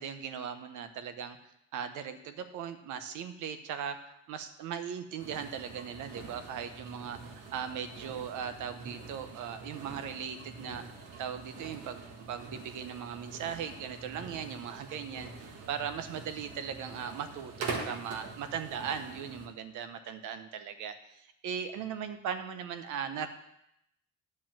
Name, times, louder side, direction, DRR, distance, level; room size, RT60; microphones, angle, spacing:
voice 1, 0.0-10.8 11.2-23.3, right 8 dB, 85° right, 9 dB, 1.0 m, -39 dB
sound 1, 5.2-19.5, right 4 dB, 60° right, 1.5 m, -44 dB
9.8 x 5.0 x 7.5 m, 0.79 s
cardioid pair, 170°, 30 cm